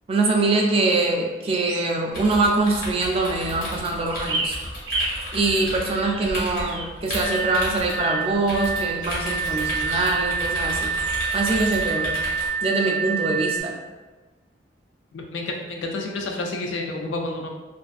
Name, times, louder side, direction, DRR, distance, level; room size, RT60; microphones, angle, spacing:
voice 1, 0.1-4.6 5.3-10.9 11.3-12.1 12.6-13.8, right 3 dB, 30° right, 1 dB, 0.3 m, -23 dB
sound 1, 1.4-2.0 4.1-7.5 7.8-8.3 9.0-10.2 11.0-11.2 11.5-11.8, right 2 dB, 90° right, 0.5 m, -33 dB
sound 2, 2.1-12.5, left 1 dB, 45° left, 1.1 m, -33 dB
sound 3, 7.2-13.6, right 5 dB, 20° left, 0.6 m, -27 dB
voice 2, 15.1-17.5, left 2 dB, 90° left, 2 dB, 0.4 m, -30 dB
2.4 x 2.4 x 2.4 m, 1.2 s
head